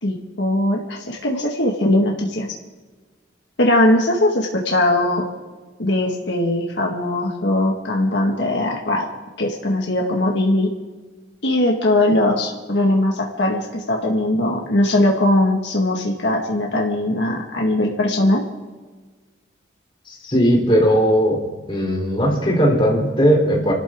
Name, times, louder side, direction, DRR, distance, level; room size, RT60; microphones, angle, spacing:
voice 1, 0.0-2.5 3.6-5.2 5.8-9.1 9.4-10.7 11.4-18.4, left 1 dB, 70° left, -1 dB, 2.0 m, -20 dB
voice 2, 20.2-21.4 21.7-23.7, equal, 25° left, -1 dB, 3.9 m, -17 dB
28.5 x 13.0 x 3.8 m, 1.3 s
head